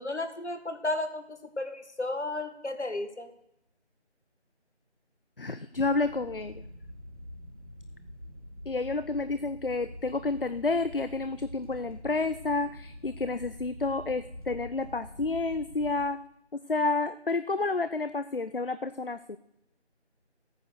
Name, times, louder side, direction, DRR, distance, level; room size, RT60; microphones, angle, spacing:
voice 1, 0.0-3.3, left 2 dB, 75° left, 8 dB, 1.9 m, -33 dB
voice 2, 5.4-6.5 8.7-16.2 16.5-19.4, left 3 dB, 55° left, 13 dB, 0.5 m, -30 dB
sound 1, 5.7-16.0, left 1 dB, 30° right, 2.0 m, -46 dB
12.5 x 9.1 x 6.5 m, 0.83 s
figure-of-eight pair, 170°, 34 cm